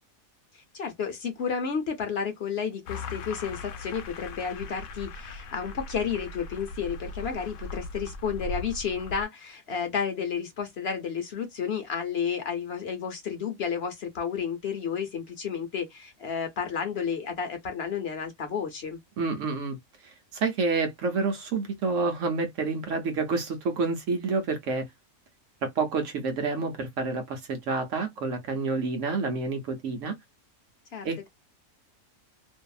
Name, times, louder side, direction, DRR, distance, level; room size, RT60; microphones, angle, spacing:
voice 1, 0.5-19.0 30.9-31.3, left 6 dB, 55° left, 0.8 m, -32 dB
sound 1, 2.9-9.2, left 3 dB, 80° left, 1.0 m, -39 dB
voice 2, 19.2-19.8 20.0-24.9 25.6-30.1 31.0-31.3, right 4 dB, 70° right, 1.1 m, -28 dB
2.6 x 2.4 x 2.3 m
omnidirectional pair, 1.4 m